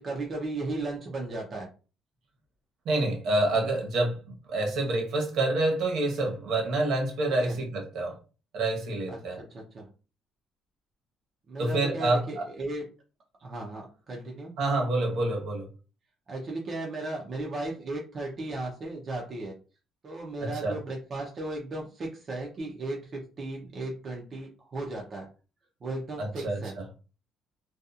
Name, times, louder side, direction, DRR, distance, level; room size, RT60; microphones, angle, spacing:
voice 1, 0.0-1.7 7.4-7.6 9.1-9.9 11.5-12.9 13.4-14.5 16.3-19.5 20.0-25.3 25.8-26.8, right 2 dB, 35° right, -2 dB, 0.5 m, -36 dB
voice 2, 2.8-4.2 4.5-8.2 8.5-9.4 11.6-12.4 14.6-15.7 20.4-20.7 26.2-26.6, right 2 dB, 70° right, 1 dB, 1.0 m, -27 dB
2.7 x 2.3 x 2.4 m, 0.34 s
cardioid pair, 145°, 0 cm